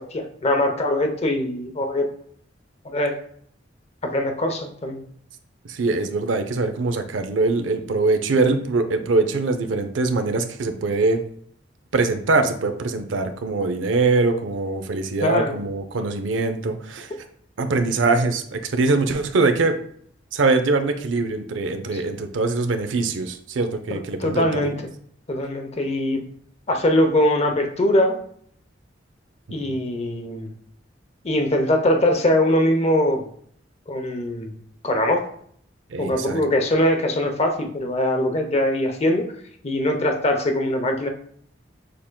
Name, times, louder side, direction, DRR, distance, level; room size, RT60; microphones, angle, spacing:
voice 1, 0.0-2.1 2.8-3.2 4.0-5.0 15.2-15.5 21.9-22.0 23.9-24.7 25.3-26.3 26.7-28.2 29.5-30.5 31.2-33.2 33.9-34.5 34.8-35.3 36.0-39.3 39.6-41.1, left 1 dB, 35° left, 5 dB, 0.7 m, -22 dB
voice 2, 5.7-11.2 11.9-17.1 17.6-19.8 20.3-24.7 29.6-29.8 35.9-36.4, right 3 dB, 80° right, 7 dB, 0.5 m, -22 dB
6.5 x 3.6 x 2.2 m, 0.62 s
head